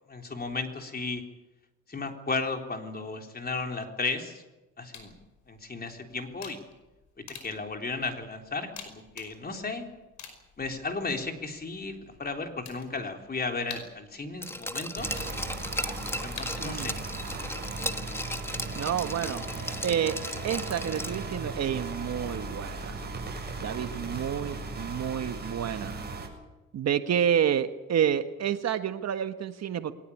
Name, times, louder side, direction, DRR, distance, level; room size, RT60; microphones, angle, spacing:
voice 1, 0.1-1.2 1.9-4.4 4.8-5.1 5.5-6.6 7.2-9.9 10.6-15.1 16.2-17.0, left 3 dB, 30° left, 4 dB, 3.6 m, -34 dB
sound 1, 4.9-17.0, left 6 dB, 70° left, 5.3 m, -50 dB
Glass, 14.4-21.4 21.7-21.8, left 1 dB, 10° left, 1.4 m, -36 dB
sound 2, 15.0-26.3, right 3 dB, 35° right, 7.7 m, -37 dB
voice 2, 16.6-17.0 18.7-19.4 19.8-20.2 20.4-22.9 23.6-26.0 26.7-29.9, right 9 dB, 60° right, 9 dB, 1.4 m, -29 dB
22.0 x 19.0 x 8.5 m, 1.1 s
cardioid pair, 90°, 30 cm